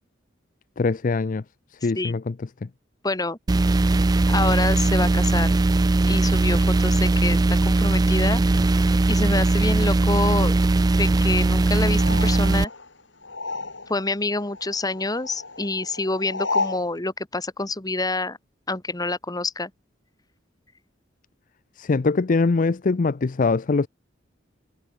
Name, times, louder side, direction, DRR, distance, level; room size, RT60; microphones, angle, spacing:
voice 1, 0.8-1.4 1.8-2.4 2.6-2.7 21.8-23.9, left 3 dB, 45° left, 0.5 m, -22 dB
voice 2, 3.0-3.4 4.3-5.5 6.0-7.4 7.7-8.4 9.1-10.5 11.0-12.7 13.9-18.4 18.7-19.7, left 2 dB, 20° left, 1.5 m, -27 dB
sound 1, 3.5-12.6, right 2 dB, 20° right, 0.3 m, -19 dB
sound 2, 11.9-14.1 14.4-16.9, left 3 dB, 70° left, 6.5 m, -32 dB
head